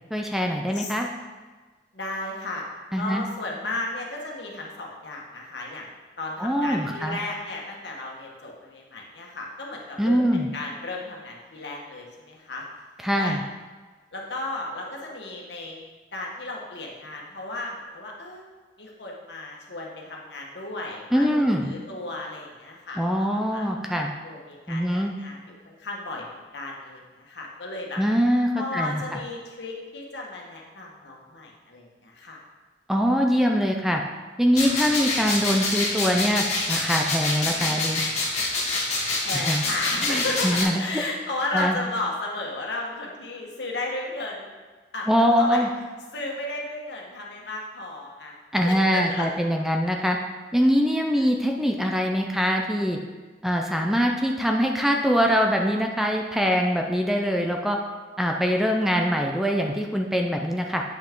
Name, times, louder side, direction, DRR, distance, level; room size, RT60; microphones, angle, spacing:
voice 1, 0.1-1.1 2.9-3.2 6.4-7.2 10.0-10.5 13.0-13.4 21.1-21.7 23.0-24.1 24.7-25.2 28.0-29.2 32.9-34.0 34.4-38.0 39.3-39.6 40.1-40.8 41.5-41.8 45.1-45.7 48.5-50.2 50.5-53.0 53.4-57.8 58.2-60.8, equal, ahead, 1 dB, 0.5 m, -23 dB
voice 2, 1.9-2.6 2.9-5.9 6.2-12.6 13.2-13.4 14.1-15.8 16.1-18.5 18.8-23.7 24.2-28.0 28.5-32.4 39.2-44.6 44.9-45.6 46.1-48.3 48.6-49.3 51.1-51.3, left 2 dB, 70° left, -2 dB, 1.5 m, -34 dB
sound 1, 34.5-40.6, left 2 dB, 40° left, 1.5 m, -26 dB
8.9 x 5.8 x 3.7 m, 1.4 s
head